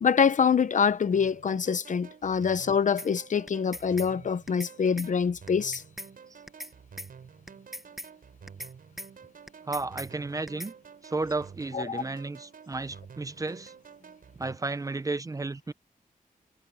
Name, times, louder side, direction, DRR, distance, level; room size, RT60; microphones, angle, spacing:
voice 1, 0.0-5.8 11.7-12.0, left 6 dB, 60° left, 0.9 m, -25 dB
sound 1, 1.1-14.6, right 6 dB, 85° right, 6.2 m, -50 dB
sound 2, 3.0-3.1 3.5-4.1 4.5-4.7 5.0-5.1 5.5-6.1 6.5-6.7 7.0-7.1 7.5-8.1 8.5-8.7 9.0-9.1 9.5-10.1 10.5-10.7, equal, ahead, 0.9 m, -40 dB
voice 2, 9.7-10.7 11.0-13.7 14.4-15.7, right 3 dB, 25° right, 0.6 m, -33 dB
wide cardioid pair, 155°, 14 cm